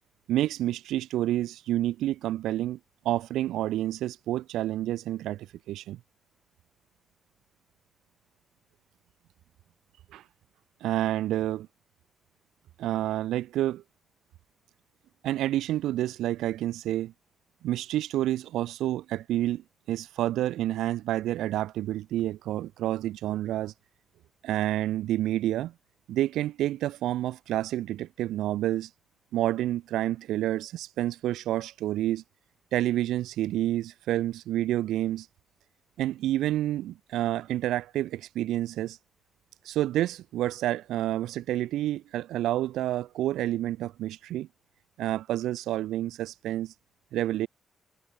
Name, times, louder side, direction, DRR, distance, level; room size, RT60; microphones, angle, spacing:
voice 1, 0.3-2.8 3.1-6.0 10.1-10.2 10.8-11.7 12.8-13.8 15.2-17.1 17.6-23.7 24.4-25.7 26.1-28.9 29.3-32.2 32.7-35.3 36.0-39.0 39.7-44.5 45.0-46.7 47.1-47.5, right 13 dB, 85° right, 1.9 m, -29 dB
supercardioid pair, 55°, 0 cm